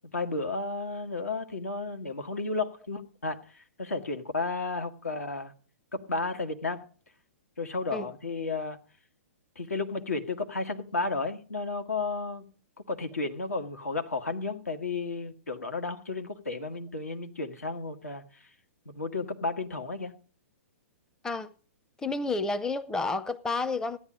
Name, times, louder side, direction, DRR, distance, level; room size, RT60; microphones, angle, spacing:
voice 1, 0.1-5.5 5.9-6.8 7.6-8.8 9.5-12.4 12.9-18.5 18.8-20.1, left 3 dB, 85° left, 1.6 m, -33 dB
voice 2, 22.0-24.0, left 3 dB, 10° left, 0.6 m, -30 dB
15.5 x 10.0 x 5.0 m
figure-of-eight pair, 120°, 8 cm